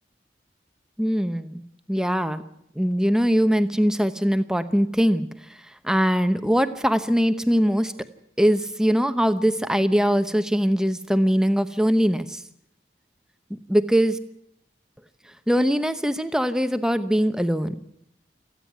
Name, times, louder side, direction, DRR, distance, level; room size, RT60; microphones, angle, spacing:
voice 1, 1.0-1.6 1.9-2.4 2.8-5.3 5.8-7.9 8.4-12.4 13.5-14.2 15.5-17.8, equal, 5° right, 10 dB, 0.9 m, -21 dB
28.0 x 9.9 x 9.5 m, 0.76 s
head